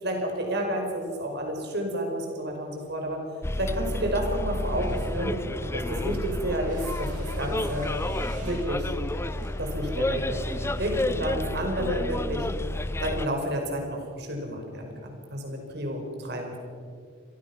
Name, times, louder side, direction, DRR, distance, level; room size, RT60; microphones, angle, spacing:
voice 1, 0.0-3.2 3.6-5.3 5.7-8.0 8.4-8.9 9.6-12.5 13.0-16.6, right 1 dB, 60° right, 2 dB, 5.3 m, -30 dB
Bus, 3.4-13.3, left 1 dB, 15° left, 0.5 m, -30 dB
sound 1, 4.2-12.3, right 1 dB, 40° right, 6.1 m, -44 dB
27.5 x 18.0 x 6.2 m, 2.1 s
head